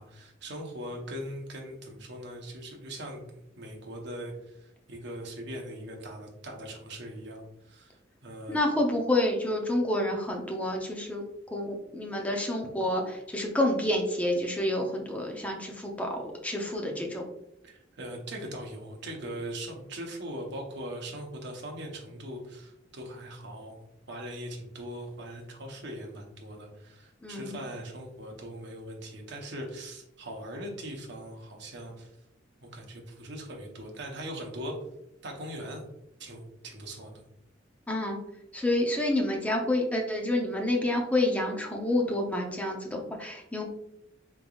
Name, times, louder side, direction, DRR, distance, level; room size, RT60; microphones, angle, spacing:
voice 1, 0.0-3.2 3.6-8.6 17.6-32.1 32.6-34.7 35.2-35.8 36.2-37.2, right 1 dB, 65° right, 1 dB, 0.8 m, -40 dB
voice 2, 8.5-11.2 11.5-17.2 27.2-27.6 37.9-38.2 38.5-43.6, left 1 dB, 10° left, 1 dB, 0.6 m, -28 dB
3.7 x 3.4 x 2.3 m, 0.82 s
head